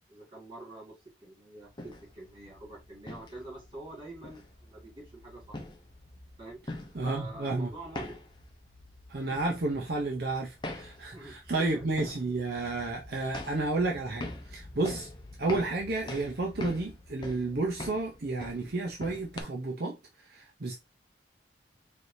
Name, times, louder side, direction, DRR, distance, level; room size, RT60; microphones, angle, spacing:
voice 1, 0.1-5.6 6.4-6.6 7.0-8.1 11.1-11.9, right 2 dB, 25° right, 2.0 m, -45 dB
sound 1, 1.6-19.4, left 1 dB, 25° left, 0.7 m, -44 dB
voice 2, 6.9-7.7 9.1-15.1 15.4-20.0 20.2-20.7, right 2 dB, 55° right, 0.7 m, -31 dB
4.6 x 3.3 x 2.7 m
head